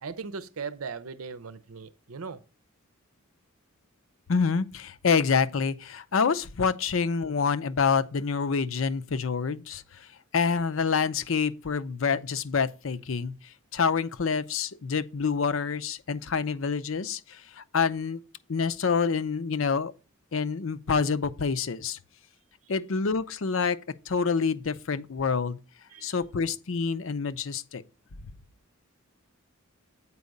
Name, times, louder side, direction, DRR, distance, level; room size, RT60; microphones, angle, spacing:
voice 1, 0.0-2.4 25.9-26.1, right 5 dB, 90° right, 0.7 m, -38 dB
voice 2, 4.3-10.1 10.3-18.2 18.5-19.9 20.3-22.0 22.7-23.8 24.1-25.6 26.0-27.8, left 5 dB, 65° left, 0.6 m, -27 dB
8.3 x 4.7 x 5.2 m
head